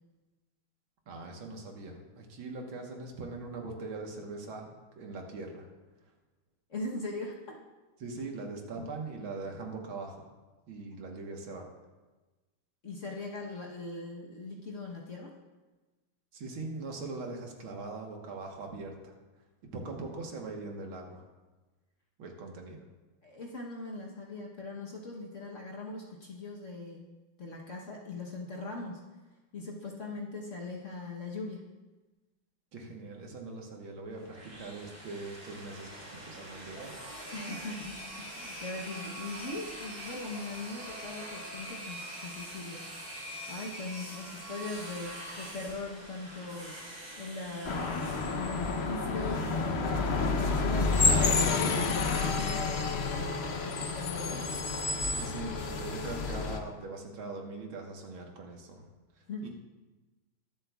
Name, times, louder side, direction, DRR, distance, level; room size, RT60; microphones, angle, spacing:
voice 1, 1.1-4.7 5.0-5.7 8.0-10.3 10.7-11.7 16.3-19.1 19.6-21.2 22.2-22.8 32.7-37.0 55.1-58.9 59.4-59.5, right 3 dB, 75° right, 1 dB, 2.1 m, -41 dB
voice 2, 6.7-7.6 12.8-15.3 23.2-27.1 27.4-29.0 29.5-31.6 37.3-43.1 43.5-46.8 47.2-47.9 48.4-54.5 59.3-59.5, left 3 dB, 45° left, -2 dB, 1.1 m, -40 dB
sound 1, 34.1-50.0, right 1 dB, 25° right, 4.4 m, -44 dB
sound 2, 47.6-56.6, left 4 dB, 85° left, 0.5 m, -29 dB
22.0 x 7.8 x 2.4 m, 1.2 s
omnidirectional pair, 2.3 m